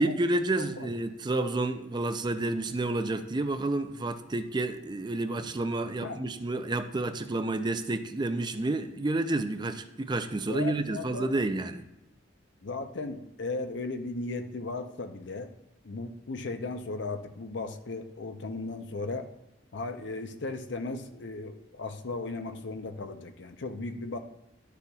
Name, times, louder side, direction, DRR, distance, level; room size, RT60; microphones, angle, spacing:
voice 1, 0.0-11.8, right 2 dB, 25° right, 0.4 m, -30 dB
voice 2, 10.5-11.3 12.6-15.5 15.8-19.3 19.7-24.2, left 3 dB, 65° left, 0.6 m, -36 dB
11.5 x 6.8 x 2.3 m
head